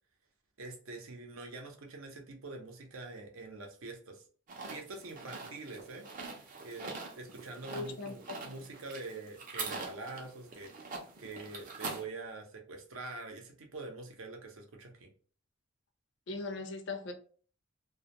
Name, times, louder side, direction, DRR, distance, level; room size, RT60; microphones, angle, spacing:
voice 1, 0.6-4.2 4.7-6.1 6.3-10.9 11.2-15.1, right 3 dB, 85° right, 0.7 m, -45 dB
sound 1, 4.5-12.0, right 4 dB, 40° right, 0.5 m, -44 dB
voice 2, 7.7-8.4 16.3-17.1, left 3 dB, 55° left, 0.4 m, -39 dB
2.2 x 2.1 x 2.8 m
head